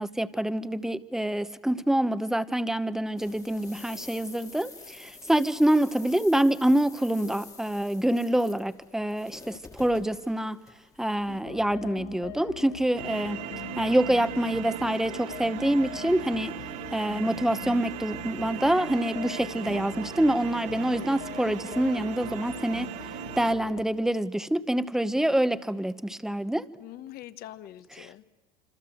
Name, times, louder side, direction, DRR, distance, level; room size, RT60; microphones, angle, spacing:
voice 1, 0.0-4.7 5.3-9.3 9.8-10.6 11.0-13.4 13.8-16.5 16.9-22.9 23.4-25.9 26.2-26.6, right 1 dB, ahead, 13 dB, 1.0 m, -26 dB
sound 1, 3.2-11.4, left 4 dB, 15° left, 1.8 m, -48 dB
sound 2, 11.3-23.8, left 12 dB, 80° left, 1.7 m, -43 dB
sound 3, 12.9-23.5, right 11 dB, 75° right, 2.3 m, -38 dB
voice 2, 26.8-28.2, left 13 dB, 55° left, 13 dB, 1.3 m, -44 dB
26.5 x 26.0 x 7.9 m, 1.2 s
supercardioid pair, 120°, 19 cm